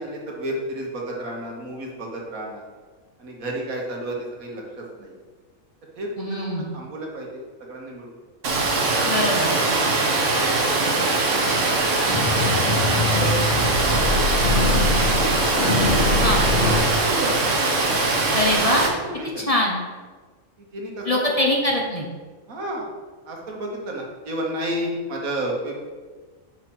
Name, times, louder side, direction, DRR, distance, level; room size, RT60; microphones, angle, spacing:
voice 1, 0.0-2.6 3.2-5.2 5.9-8.1 8.9-11.0 11.2-11.8 12.8-14.0 14.3-15.3 15.9-17.6 19.0-19.5 20.6-21.2 22.5-22.9 23.3-25.9, right 1 dB, 85° right, -1 dB, 1.8 m, -32 dB
voice 2, 6.2-6.7 9.1-9.5 16.2-16.5 18.3-18.8 19.5-19.8 21.0-22.1, left 1 dB, 30° left, -1 dB, 0.8 m, -22 dB
Water, 8.4-18.9, right 3 dB, 65° right, 1.4 m, -22 dB
sound 1, 12.1-16.8, left 2 dB, 85° left, 2.3 m, -23 dB
5.9 x 4.6 x 6.0 m, 1.4 s
omnidirectional pair, 1.4 m